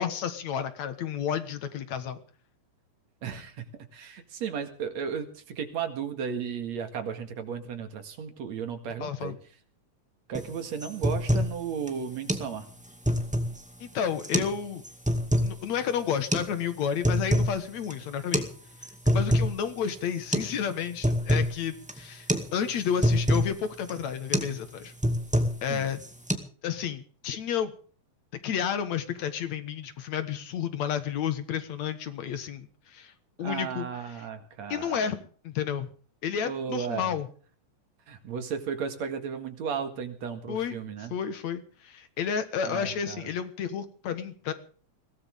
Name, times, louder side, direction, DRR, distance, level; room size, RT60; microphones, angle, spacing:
voice 1, 0.0-2.2 9.0-9.4 13.8-14.8 15.4-18.5 19.1-24.9 25.6-26.0 26.6-27.7 28.4-33.1 33.4-34.3 34.7-35.9 36.2-37.3 40.5-44.5, left 8 dB, 65° left, 11 dB, 2.6 m, -31 dB
voice 2, 3.2-3.6 3.9-9.4 10.3-12.7 25.7-25.9 33.4-35.1 36.4-37.2 38.1-41.1 42.6-43.3, right 7 dB, 60° right, 8 dB, 3.1 m, -34 dB
sound 1, 10.3-10.5 10.8-11.5 11.9-12.0 12.3-12.5 12.8-13.6 14.2-14.6 14.8-15.5 16.3-16.5 16.8-17.6 17.8-17.9 18.3-18.5 18.8-19.6 19.9-20.0 20.3-20.5 20.8-21.5 21.9-22.0 22.3-22.5 22.8-23.5 23.9-24.0 24.3-24.6 24.8-25.6 26.0-26.3, equal, 5° right, 1.6 m, -25 dB
22.0 x 17.5 x 3.6 m, 0.43 s
omnidirectional pair, 3.6 m